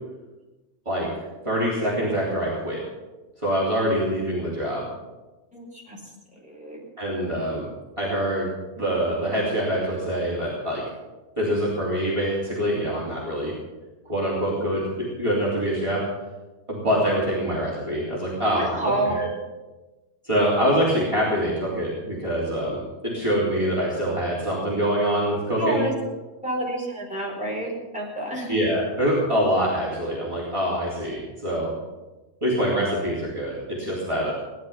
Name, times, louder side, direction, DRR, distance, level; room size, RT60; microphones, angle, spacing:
voice 1, 1.4-2.8 3.4-4.9 7.0-7.7 8.0-8.5 8.8-10.8 11.4-13.5 14.1-16.0 16.7-19.3 20.2-25.8 28.5-31.7 32.4-34.3, equal, 25° right, -7 dB, 3.6 m, -25 dB
voice 2, 5.5-6.9 18.5-19.2 25.5-25.9 26.4-28.5, right 1 dB, 5° right, -4 dB, 4.8 m, -29 dB
18.0 x 11.0 x 5.8 m, 1.1 s
omnidirectional pair, 1.2 m